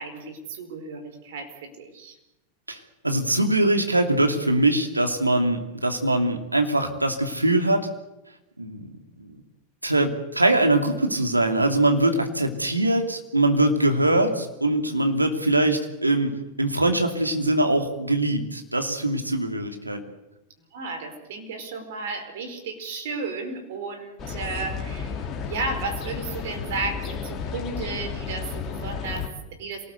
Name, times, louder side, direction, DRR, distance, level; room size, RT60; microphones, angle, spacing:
voice 1, 0.0-2.2 20.7-29.9, right 3 dB, 55° right, 9 dB, 4.6 m, -34 dB
voice 2, 3.0-7.9 8.6-8.9 9.2-9.4 9.8-16.3 16.6-20.0, right 1 dB, 85° right, 5 dB, 2.8 m, -22 dB
sound 1, 24.2-29.3, left 6 dB, 30° left, 3.0 m, -33 dB
26.5 x 19.0 x 8.1 m, 0.94 s
figure-of-eight pair, 90°, 0 cm